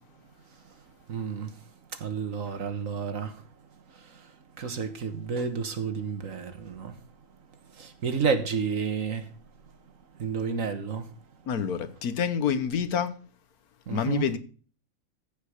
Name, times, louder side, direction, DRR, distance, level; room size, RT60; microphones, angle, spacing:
voice 1, 1.1-1.6 1.9-3.5 3.9-7.0 7.7-9.3 10.2-11.1 13.9-14.3, right 5 dB, 65° right, 1.7 m, -31 dB
voice 2, 11.5-13.1 13.9-14.4, left 7 dB, 85° left, 1.5 m, -27 dB
15.0 x 5.4 x 6.6 m
omnidirectional pair, 1.5 m